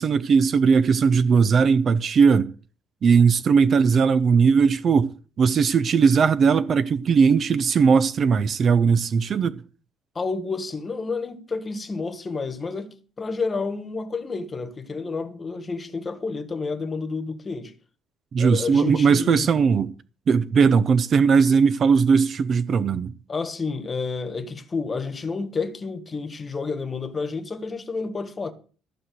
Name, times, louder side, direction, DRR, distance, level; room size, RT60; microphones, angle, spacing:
voice 1, 0.0-2.5 3.0-5.1 5.4-9.6 18.3-19.9 20.3-23.1, right 6 dB, 35° right, 0.6 m, -19 dB
voice 2, 10.1-17.7 18.4-19.5 23.3-28.5, left 4 dB, 20° left, 1.4 m, -30 dB
14.5 x 6.0 x 7.9 m
cardioid pair, 140°, 0 cm